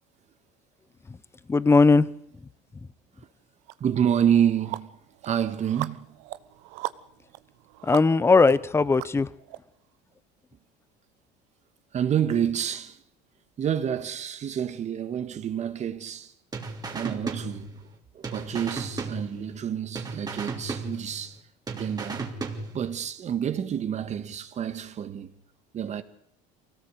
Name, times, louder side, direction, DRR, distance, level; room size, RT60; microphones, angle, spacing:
voice 1, 1.5-2.1 7.8-9.3, left 4 dB, 15° left, 0.8 m, -19 dB
sound 1, 3.7-3.8 4.2-9.6, right 18 dB, 75° right, 1.1 m, -39 dB
voice 2, 3.8-4.9 5.2-6.1 11.9-13.0 13.6-16.3 16.9-17.9 18.1-21.4 21.7-22.3 22.7-25.3 25.7-26.0, right 9 dB, 35° right, 1.8 m, -28 dB
sound 2, 16.5-18.0 18.2-19.7 19.9-21.4 21.7-23.0, right 3 dB, 20° right, 3.2 m, -35 dB
24.0 x 17.5 x 8.2 m
cardioid pair, 125°, 19 cm